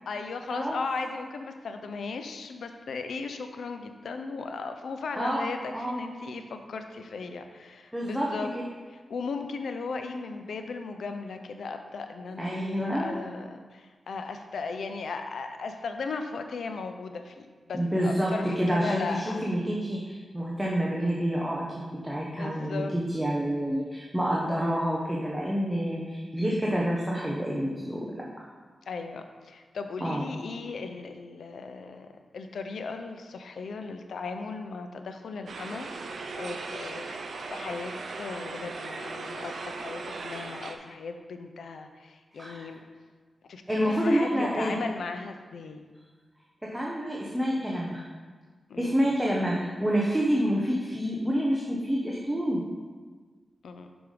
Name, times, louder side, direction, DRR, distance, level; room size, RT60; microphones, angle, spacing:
voice 1, 0.1-8.5 9.1-19.5 22.3-23.0 28.9-32.1 32.3-42.8 43.5-45.9 48.7-48.9 53.6-53.9, left 4 dB, 85° left, 6 dB, 0.5 m, -37 dB
voice 2, 5.2-6.0 7.9-8.7 12.4-13.1 17.7-28.2 30.0-30.3 42.3-42.7 43.7-44.8 46.6-48.0 48.8-52.6, equal, 5° right, -4 dB, 1.0 m, -28 dB
sound 1, 35.5-40.7, right 3 dB, 75° right, 0.6 m, -38 dB
5.9 x 5.4 x 5.0 m, 1.5 s
cardioid pair, 80°, 0 cm